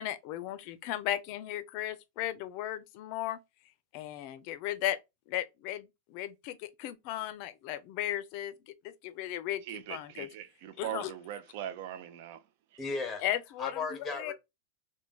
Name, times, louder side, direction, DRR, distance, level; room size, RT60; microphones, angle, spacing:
voice 1, 0.0-3.4 3.9-5.0 5.3-8.5 8.8-10.3 10.8-11.1 13.2-13.7 14.0-14.3, left 13 dB, 50° left, 0.4 m, -36 dB
voice 2, 9.6-12.4 12.7-12.8, right 11 dB, 55° right, 0.4 m, -41 dB
voice 3, 12.8-13.2 13.6-14.3, left 4 dB, 15° left, 0.7 m, -35 dB
3.2 x 2.1 x 2.2 m
supercardioid pair, 140°, 0 cm